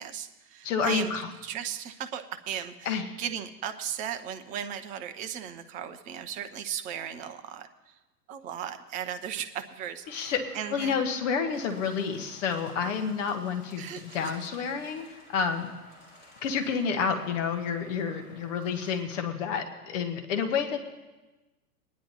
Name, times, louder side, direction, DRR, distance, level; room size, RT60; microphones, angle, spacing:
voice 1, 0.0-1.1 1.4-7.9 8.3-11.0 13.8-14.0, right 9 dB, 15° right, 9 dB, 0.5 m, -36 dB
voice 2, 0.6-1.3 2.8-3.0 10.1-10.4 10.7-13.8 14.1-15.7 16.4-20.8, left 6 dB, 50° left, 6 dB, 1.4 m, -29 dB
sound 1, 10.0-19.0, left 1 dB, 20° left, 3.7 m, -53 dB
24.0 x 10.5 x 2.9 m, 1.1 s
figure-of-eight pair, 105°, 47 cm